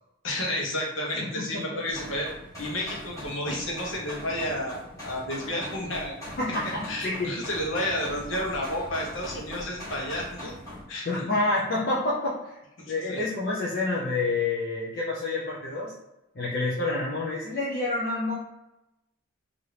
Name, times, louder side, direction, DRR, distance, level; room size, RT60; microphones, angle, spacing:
voice 1, 0.2-2.3 2.6-6.1 6.9-10.5 10.9-11.1 12.8-13.2, left 1 dB, 70° left, -2 dB, 0.9 m, -31 dB
voice 2, 1.2-1.8 6.4-7.3 11.0-12.6 12.9-15.9 16.3-18.3, left 2 dB, 50° left, -6 dB, 0.6 m, -28 dB
sound 1, 1.9-10.8, left 1 dB, 15° left, 1.4 m, -41 dB
3.3 x 2.5 x 2.9 m, 0.95 s
head